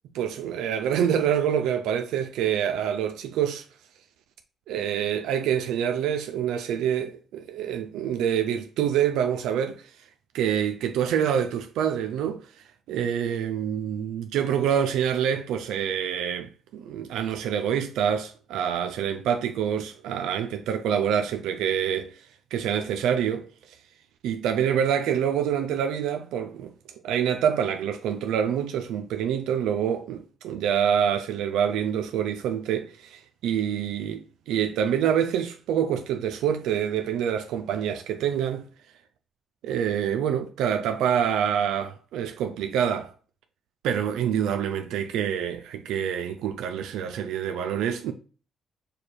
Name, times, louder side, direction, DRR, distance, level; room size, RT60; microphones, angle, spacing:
voice 1, 0.1-3.6 4.7-9.8 10.3-12.4 12.9-22.2 22.5-23.5 24.2-26.7 27.0-38.7 39.6-43.1 43.8-48.1, right 8 dB, 90° right, 0.4 m, -26 dB
4.9 x 2.3 x 4.1 m
cardioid pair, 90°, 0 cm